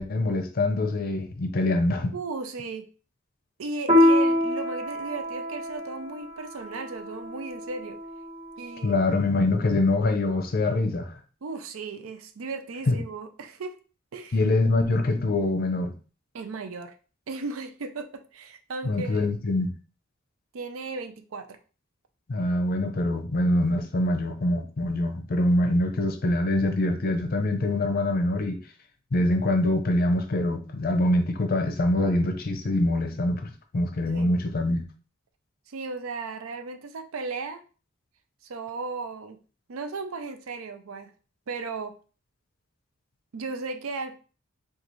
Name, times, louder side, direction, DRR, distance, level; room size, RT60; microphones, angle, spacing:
voice 1, 0.0-2.1 8.8-11.1 12.9-13.0 14.3-15.9 18.8-19.7 22.3-28.6 29.1-34.8, left 2 dB, 45° left, 6 dB, 0.6 m, -24 dB
voice 2, 2.1-2.9 3.6-8.0 8.6-9.0 11.4-13.8 14.1-14.4 16.3-16.9 17.3-19.3 20.5-21.6 34.1-34.4 35.7-37.6 38.5-39.4 39.7-41.1 41.5-42.0 43.3-44.2, right 3 dB, 80° right, 8 dB, 0.5 m, -36 dB
Piano, 3.9-8.8, left 1 dB, 30° right, 1.2 m, -25 dB
4.0 x 2.4 x 3.0 m, 0.36 s
head